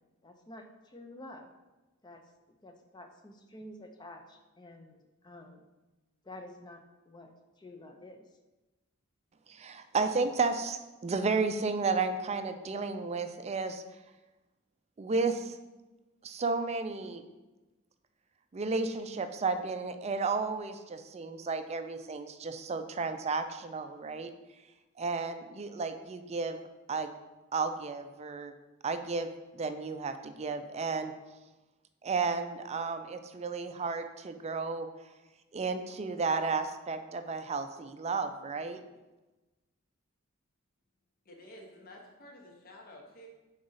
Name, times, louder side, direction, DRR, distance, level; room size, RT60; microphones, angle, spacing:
voice 1, 0.2-1.5 2.0-2.2 2.6-5.6 6.2-7.3 7.6-8.3, left 1 dB, 20° left, 5 dB, 0.6 m, -49 dB
voice 2, 9.5-13.8 15.0-15.6 16.2-17.2 18.5-24.3 25.0-26.6 26.9-27.1 27.5-28.5 28.8-31.1 32.0-34.9 35.5-38.8, right 4 dB, 30° right, 9 dB, 0.4 m, -33 dB
voice 3, 41.2-43.3, left 1 dB, 45° left, 0 dB, 1.0 m, -51 dB
5.0 x 3.9 x 5.5 m, 1.1 s
head